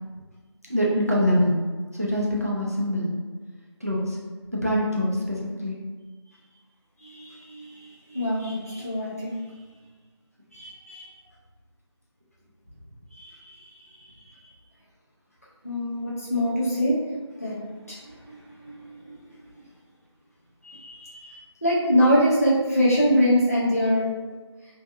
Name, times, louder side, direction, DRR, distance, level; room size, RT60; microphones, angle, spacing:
voice 1, 0.7-1.5 1.9-3.1 3.8-4.2 4.5-5.8, equal, 35° right, -3 dB, 0.4 m, -24 dB
voice 2, 7.0-9.4 10.5-11.1 13.1-14.5 15.6-17.0 17.4-19.3 20.6-24.1, equal, 30° left, -9 dB, 0.4 m, -25 dB
2.6 x 2.3 x 2.4 m, 1.4 s
figure-of-eight pair, 175°, 15 cm